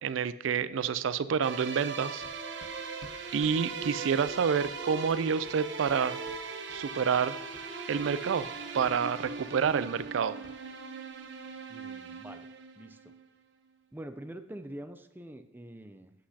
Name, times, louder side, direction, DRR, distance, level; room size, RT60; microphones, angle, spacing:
voice 1, 0.0-2.2 3.3-6.2 6.7-7.4 7.9-8.5 8.7-10.4, right 6 dB, 80° right, 15 dB, 0.4 m, -28 dB
sound 1, 1.4-13.2, right 4 dB, 65° right, 0.8 m, -40 dB
Run, 2.2-6.4 6.7-7.3 7.5-10.2 10.4-10.6, left 3 dB, 75° left, 0.6 m, -54 dB
voice 2, 11.7-12.5 12.8-13.1 13.9-16.1, right 1 dB, 10° right, 8 dB, 0.4 m, -45 dB
8.4 x 7.7 x 2.8 m, 0.95 s
head